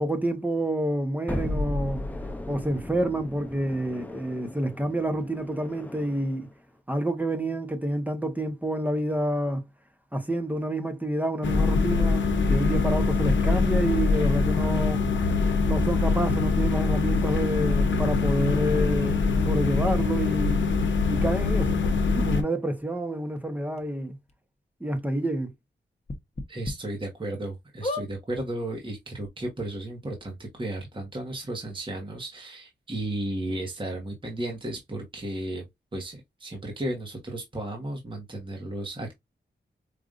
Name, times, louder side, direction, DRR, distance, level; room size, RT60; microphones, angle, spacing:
voice 1, 0.0-2.0 2.5-6.5 6.9-9.6 10.1-15.0 15.6-20.7 21.1-24.2 24.8-25.5, right 1 dB, 10° right, 0.9 m, -28 dB
sound 1, 1.3-6.4, left 1 dB, 10° left, 0.5 m, -35 dB
sound 2, 11.4-22.4, left 4 dB, 80° left, 0.8 m, -23 dB
sound 3, 23.3-23.4 23.8-23.9 24.3-24.4 26.0-26.7 27.2-27.3 27.8-28.1 28.9-29.0 29.2-29.3, left 2 dB, 35° left, 0.9 m, -33 dB
voice 2, 26.5-35.6 35.9-39.2, right 1 dB, 25° right, 1.1 m, -34 dB
5.0 x 2.5 x 2.4 m
wide cardioid pair, 115°, 19 cm